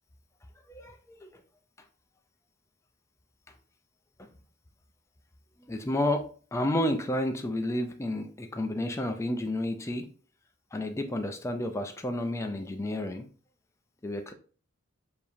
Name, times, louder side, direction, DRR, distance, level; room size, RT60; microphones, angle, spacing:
voice 1, 0.7-1.3 4.2-4.3 5.7-10.1 10.7-13.3 14.0-14.3, left 1 dB, 15° left, 0.4 m, -31 dB
6.8 x 2.8 x 2.6 m
head